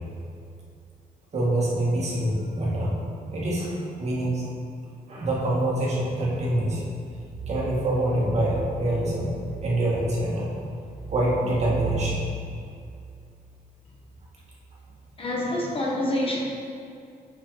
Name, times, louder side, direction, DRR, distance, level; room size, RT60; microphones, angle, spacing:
voice 1, 1.3-3.0 3.3-4.5 5.1-6.8 7.5-9.3 9.6-10.6 11.1-12.3, right 1 dB, 45° right, -5 dB, 1.9 m, -25 dB
voice 2, 15.2-16.4, left 1 dB, 35° left, -3 dB, 1.3 m, -26 dB
8.7 x 6.5 x 3.9 m, 2.5 s
wide cardioid pair, 160°, 16 cm